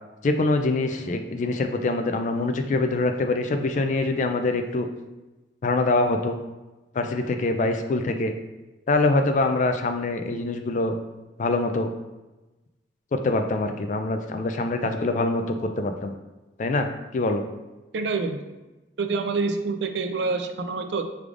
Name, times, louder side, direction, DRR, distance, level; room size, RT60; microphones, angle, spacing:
voice 1, 0.2-4.9 5.6-6.4 6.9-8.3 8.9-10.9 11.4-11.9 13.1-16.1 16.6-17.4, left 2 dB, 40° left, 7 dB, 0.3 m, -24 dB
voice 2, 17.9-18.4 19.0-21.1, right 4 dB, 70° right, 6 dB, 0.4 m, -27 dB
4.9 x 3.3 x 2.4 m, 1.1 s
head